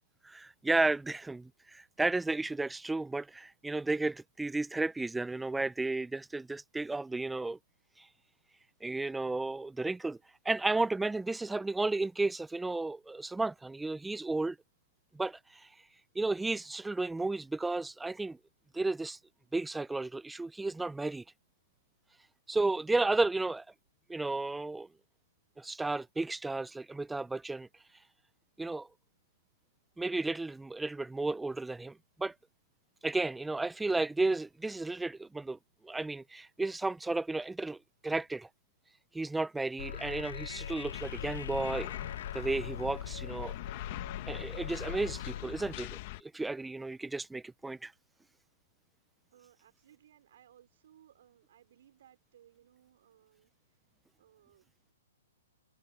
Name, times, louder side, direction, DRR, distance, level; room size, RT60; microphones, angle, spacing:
voice 1, 0.2-7.6 8.0-8.1 8.8-10.2 10.4-14.6 15.1-15.9 16.1-18.4 18.7-19.2 19.5-21.2 22.5-23.7 24.1-24.9 25.6-27.8 28.6-28.9 30.0-32.3 33.0-35.6 35.8-37.8 38.0-38.5 39.1-41.9 42.3-43.5 44.3-45.9 46.2-47.9, right 2 dB, 5° right, 0.6 m, -33 dB
sound 1, 39.8-45.4, left 9 dB, 70° left, 2.6 m, -41 dB
sound 2, 40.9-46.2, left 20 dB, 45° left, 1.8 m, -43 dB
voice 2, 49.3-53.5 54.2-54.9, right 10 dB, 60° right, 5.2 m, -62 dB
hypercardioid pair, 140°, 0 cm